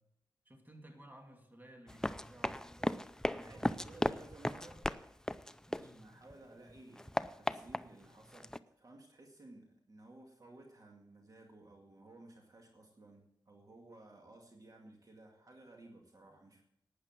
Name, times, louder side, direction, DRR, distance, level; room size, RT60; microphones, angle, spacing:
voice 1, 0.4-3.0 3.4-4.1 5.6-6.1, right 1 dB, 20° right, 3 dB, 2.5 m, -56 dB
Run, 1.9-6.3 6.7-8.6, left 1 dB, 5° left, 0.5 m, -37 dB
voice 2, 3.3-4.9 5.8-16.6, right 2 dB, 45° right, 1 dB, 2.2 m, -57 dB
12.0 x 9.5 x 7.4 m, 0.78 s
wide cardioid pair, 75°, 8 cm